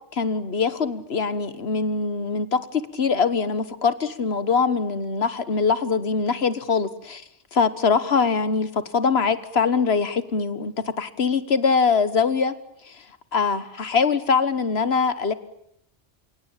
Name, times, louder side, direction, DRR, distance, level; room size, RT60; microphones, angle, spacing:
voice 1, 0.1-7.2 7.5-12.5 12.8-13.0 13.3-15.3, left 5 dB, 60° left, 13 dB, 1.6 m, -23 dB
29.5 x 17.5 x 8.8 m, 0.75 s
omnidirectional pair, 1.2 m